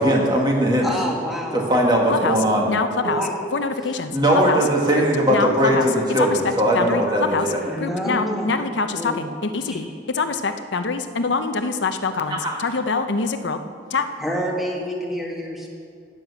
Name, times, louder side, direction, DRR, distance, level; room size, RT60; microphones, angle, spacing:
voice 1, 0.0-0.9 1.5-2.7 4.1-7.6 12.3-12.6, right 1 dB, 20° right, -1 dB, 1.8 m, -19 dB
voice 2, 0.8-1.6 3.0-3.4 3.9-4.0 7.6-8.5 8.8-9.2 9.6-9.8 14.2-15.7, equal, ahead, -2 dB, 1.7 m, -28 dB
voice 3, 2.7-3.2 3.5-4.1 4.4-4.6 5.0-5.1 5.3-5.9 6.2-7.5 7.8-9.9 10.1-13.6 13.9-14.1, left 4 dB, 75° left, 8 dB, 0.7 m, -25 dB
10.5 x 9.2 x 7.2 m, 2.3 s
head